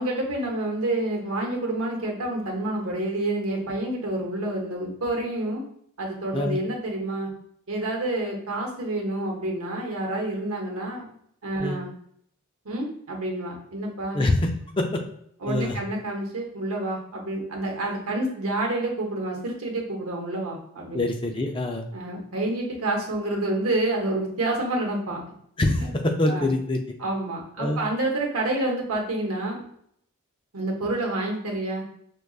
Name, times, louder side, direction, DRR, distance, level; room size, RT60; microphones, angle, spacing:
voice 1, 0.0-5.6 6.0-7.3 7.7-11.1 11.4-11.9 12.6-14.2 15.4-21.0 21.9-25.2 25.8-25.9 26.3-26.5 27.0-29.6 30.5-31.8, right 2 dB, 85° right, 0 dB, 0.9 m, -28 dB
voice 2, 14.1-14.5 14.8-15.0 15.5-15.8 20.9-21.8 25.6-26.8 27.6-27.8, left 2 dB, 25° left, 3 dB, 0.3 m, -24 dB
4.8 x 2.3 x 2.3 m, 0.69 s
head